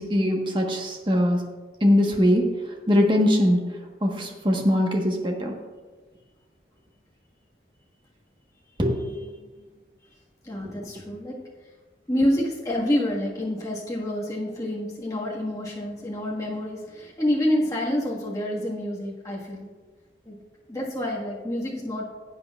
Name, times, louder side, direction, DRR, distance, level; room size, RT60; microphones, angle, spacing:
voice 1, 0.0-1.4 1.8-3.6 4.0-5.5 8.8-9.3 10.6-10.7, equal, 25° right, 1 dB, 1.3 m, -22 dB
voice 2, 10.4-11.4 12.1-19.7 20.2-20.3 20.7-22.0, left 1 dB, 20° left, -5 dB, 1.6 m, -27 dB
17.0 x 8.0 x 2.4 m, 1.3 s
head